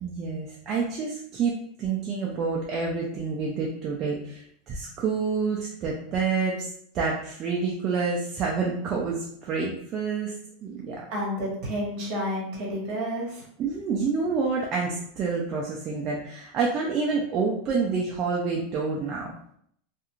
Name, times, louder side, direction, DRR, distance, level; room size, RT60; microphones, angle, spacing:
voice 1, 0.0-10.3 10.6-11.1 13.6-19.3, right 4 dB, 25° right, -2 dB, 0.3 m, -28 dB
voice 2, 11.1-13.4, equal, 45° right, -3 dB, 1.0 m, -30 dB
2.4 x 2.3 x 2.9 m, 0.68 s
supercardioid pair, 170°, 0 cm